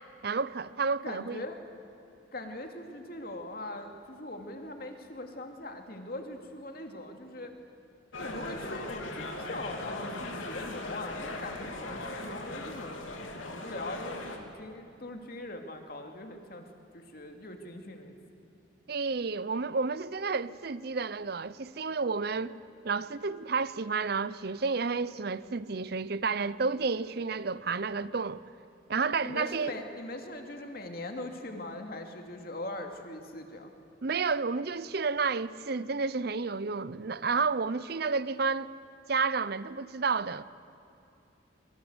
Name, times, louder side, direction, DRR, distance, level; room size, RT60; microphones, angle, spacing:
voice 1, 0.2-1.4 18.9-22.6 22.8-28.4 28.9-29.7 34.0-38.7 39.1-40.4, right 4 dB, 50° right, 0.6 m, -31 dB
voice 2, 1.0-1.6 2.3-7.5 8.2-16.6 16.9-18.1 29.2-33.7, left 1 dB, 50° left, 2.6 m, -41 dB
sound 1, 8.1-14.4, left 2 dB, 85° left, 2.9 m, -39 dB
25.5 x 23.0 x 8.0 m
head